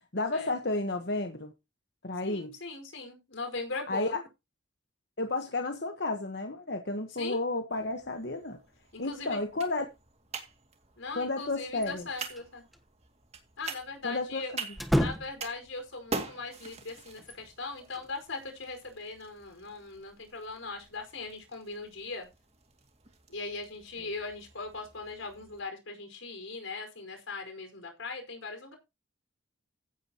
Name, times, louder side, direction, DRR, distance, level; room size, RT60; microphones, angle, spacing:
voice 1, 0.1-1.5 2.0-2.6 3.9-4.1 5.2-8.6 9.0-9.9 11.1-12.0 14.0-14.6, left 2 dB, 55° left, 1.3 m, -32 dB
voice 2, 2.2-4.2 7.2-7.4 8.9-9.4 11.0-12.6 13.6-14.5 15.0-22.3 23.3-28.7, left 3 dB, 85° left, 5.1 m, -39 dB
sound 1, 7.7-25.6, right 3 dB, 30° right, 2.4 m, -46 dB
sound 2, 11.8-12.5 12.7-12.8 14.7-15.6 17.2-18.1, equal, ahead, 1.1 m, -31 dB
15.5 x 8.9 x 3.0 m
head